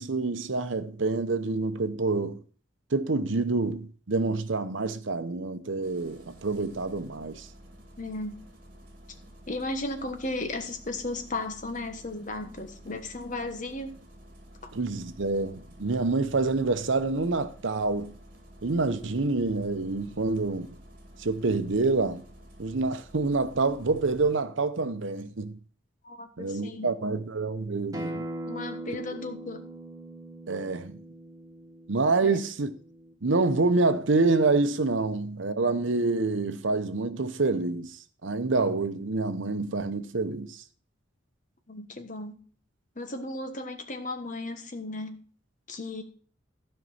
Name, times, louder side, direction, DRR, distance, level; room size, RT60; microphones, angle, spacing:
voice 1, 0.0-2.4 2.9-7.5 14.7-18.1 18.6-20.7 21.2-22.2 22.6-25.6 26.4-28.3 30.5-31.0 31.9-32.7 33.2-40.6, right 3 dB, 70° right, 0.8 m, -27 dB
Engine starting, 5.8-24.4, equal, 45° right, 2.2 m, -51 dB
voice 2, 8.0-8.4 9.5-14.0 14.6-14.7 26.0-27.2 28.5-29.6 32.2-32.4 41.7-42.4 43.0-45.2 45.7-46.0, left 2 dB, 40° left, 1.2 m, -35 dB
Acoustic guitar, 27.9-33.1, right 1 dB, 20° right, 1.3 m, -40 dB
12.5 x 5.5 x 5.6 m
head